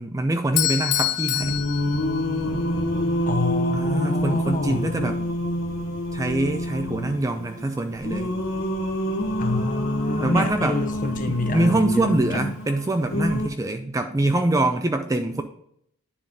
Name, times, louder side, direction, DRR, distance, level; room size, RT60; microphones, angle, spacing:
voice 1, 0.0-1.6 3.7-5.2 6.1-8.3 10.2-10.8 11.3-15.4, right 2 dB, 15° right, 7 dB, 0.3 m, -24 dB
Bell / Doorbell, 0.6-2.6, left 14 dB, 80° left, 0.4 m, -26 dB
Singing, 1.4-13.5, equal, 60° left, 1.2 m, -27 dB
voice 2, 3.3-4.9 9.4-12.5, left 2 dB, 35° left, 6 dB, 0.8 m, -27 dB
9.6 x 3.7 x 3.7 m, 0.69 s
head